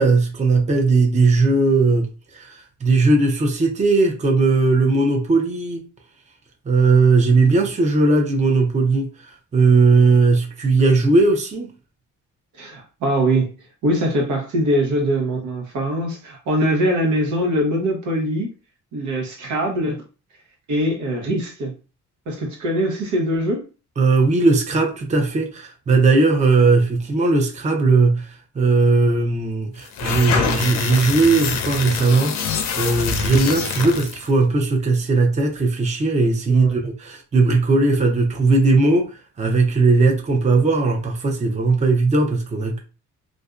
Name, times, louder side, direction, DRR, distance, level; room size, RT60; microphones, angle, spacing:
voice 1, 0.0-5.8 6.7-11.7 24.0-42.8, right 3 dB, 25° right, 0.6 m, -18 dB
voice 2, 12.5-13.5 13.8-18.5 18.9-20.0 20.7-21.8 22.3-23.7 36.5-36.7, right 1 dB, 75° right, 0.9 m, -22 dB
sound 1, 29.8-34.3, left 6 dB, 60° left, 0.6 m, -25 dB
2.5 x 2.1 x 2.4 m
cardioid pair, 90°, 30 cm